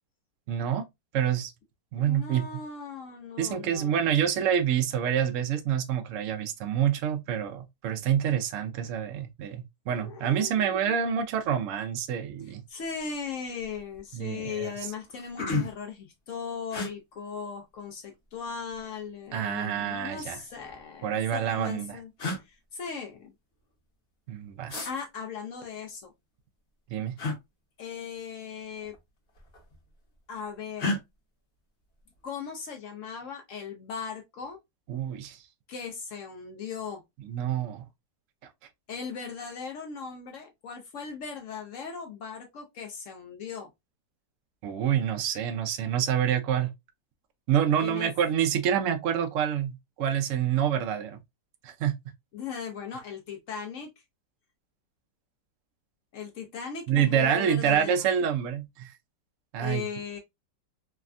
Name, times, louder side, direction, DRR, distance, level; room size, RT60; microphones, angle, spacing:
voice 1, 0.5-0.8 1.1-1.5 1.9-2.4 3.4-12.6 14.1-14.7 19.3-20.4 21.0-22.0 24.3-24.8 26.9-27.1 34.9-35.4 37.3-37.8 44.6-46.7 47.5-51.2 51.6-51.9 56.9-58.9 59.5-59.8, right 9 dB, 80° right, 0.7 m, -27 dB
voice 2, 1.9-4.1 9.9-11.0 12.7-23.3 24.7-26.1 27.8-29.0 30.3-30.9 32.2-34.6 35.7-37.0 38.9-43.7 47.8-48.1 52.3-53.9 56.1-58.1 59.6-60.2, left 6 dB, 80° left, 0.7 m, -38 dB
sound 1, 13.0-13.2 13.6-14.1 14.6-14.7 15.0-15.9 16.7-16.9 18.1-18.8 20.0-20.8 21.7-21.8 22.2-22.4 24.7-24.9 27.2-27.4 28.7-29.0 29.3-29.9 30.8-31.0, left 2 dB, 45° left, 0.9 m, -32 dB
3.3 x 2.1 x 2.4 m
omnidirectional pair, 1.9 m